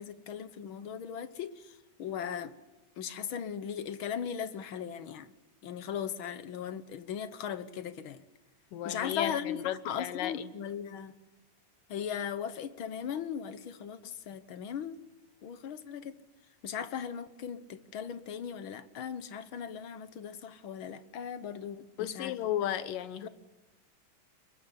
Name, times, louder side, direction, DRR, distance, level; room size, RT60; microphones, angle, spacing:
voice 1, 0.0-2.5 3.0-5.3 5.6-8.2 8.8-9.6 9.8-11.1 11.9-15.0 15.4-16.1 16.6-22.4 23.2-23.3, left 8 dB, 65° left, 1.3 m, -38 dB
voice 2, 8.7-10.5 22.0-23.3, left 11 dB, 85° left, 2.9 m, -34 dB
27.0 x 22.5 x 9.9 m
omnidirectional pair, 3.8 m